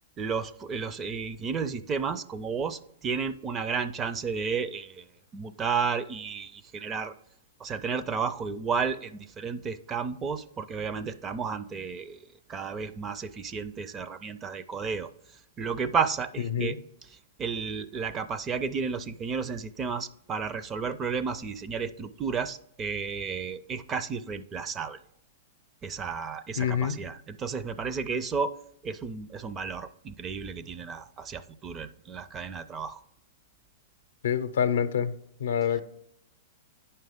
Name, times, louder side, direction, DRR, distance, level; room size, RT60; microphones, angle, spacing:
voice 1, 0.2-5.1 5.3-7.1 7.6-12.2 12.5-15.1 15.6-16.8 17.4-25.0 25.8-28.5 28.8-33.0, right 5 dB, 25° right, 12 dB, 0.5 m, -32 dB
voice 2, 26.6-27.0 34.2-35.1 35.4-35.8, left 8 dB, 75° left, 11 dB, 0.6 m, -26 dB
9.1 x 5.6 x 3.6 m, 0.78 s
hypercardioid pair, 110°, 0 cm